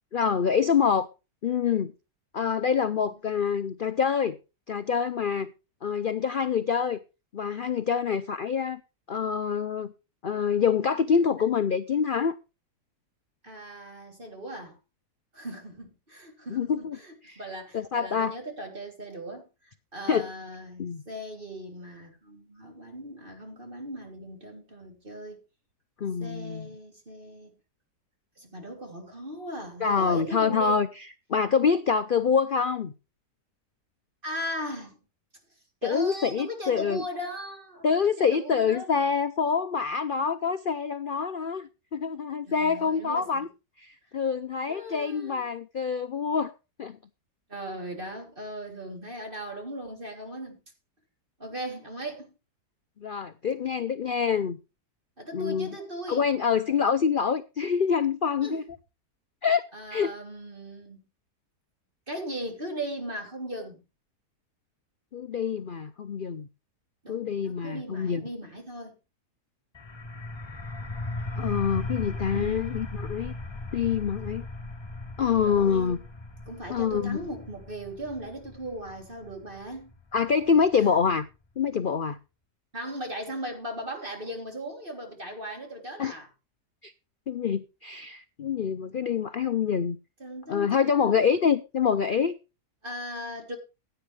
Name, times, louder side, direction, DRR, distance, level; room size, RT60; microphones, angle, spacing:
voice 1, 0.1-1.1 1.4-1.9 2.3-4.4 4.7-5.5 5.8-7.0 7.3-8.8 9.1-9.9 10.2-12.4 16.5-17.0 17.2-17.4 17.7-18.4 20.1-20.3 20.8-21.0 26.0-26.7 29.8-30.9 31.3-32.9 35.8-37.0 37.8-43.5 43.8-46.5 46.8-47.0 53.0-54.6 55.3-55.8 56.1-58.6 59.4-59.6 59.9-60.1 65.1-66.5 67.1-68.2 71.4-73.3 73.7-74.5 75.2-76.0 76.7-77.2 80.1-81.3 81.6-82.2 86.0-86.2 86.8-86.9 87.3-90.0 90.5-92.4, left 6 dB, 85° left, 0.4 m, -26 dB
voice 2, 13.4-14.8 15.3-25.4 26.2-27.5 28.4-30.8 34.2-35.0 35.8-38.9 42.5-43.4 44.7-45.4 47.5-50.6 51.4-52.3 55.2-56.3 58.4-58.6 59.7-61.0 62.1-63.8 67.0-69.0 72.3-72.9 75.4-76.0 76.5-79.9 82.7-86.3 90.2-91.2 92.8-93.6, equal, 30° right, 3.3 m, -38 dB
sound 1, 69.7-81.2, left 2 dB, 20° left, 0.7 m, -38 dB
16.0 x 9.1 x 3.3 m
omnidirectional pair, 1.8 m